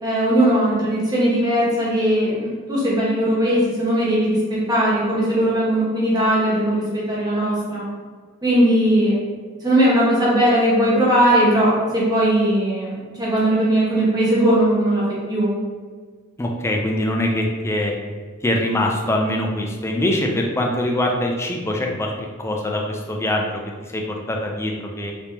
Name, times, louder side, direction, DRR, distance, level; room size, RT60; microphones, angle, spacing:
voice 1, 0.0-7.8 8.4-9.2 9.6-15.5, right 1 dB, 20° right, -7 dB, 0.9 m, -19 dB
voice 2, 16.4-17.9 18.4-22.1 22.4-23.6 23.9-24.0 24.3-25.1, left 1 dB, 10° left, 0 dB, 0.3 m, -23 dB
3.4 x 3.0 x 2.8 m, 1.5 s
head